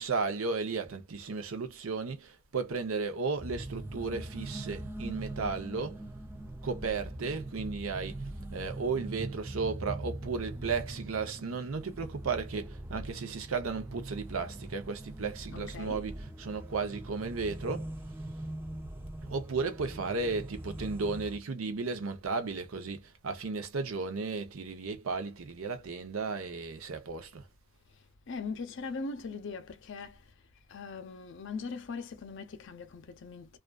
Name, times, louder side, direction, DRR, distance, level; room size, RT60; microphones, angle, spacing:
voice 1, 0.0-6.0 6.6-8.2 8.5-17.9 19.3-27.4, right 4 dB, 85° right, 0.7 m, -34 dB
sound 1, 3.4-21.4, right 1 dB, 10° right, 0.4 m, -42 dB
voice 2, 15.5-16.1 27.9-30.3 30.7-33.6, left 4 dB, 60° left, 0.5 m, -41 dB
2.4 x 2.3 x 2.3 m
head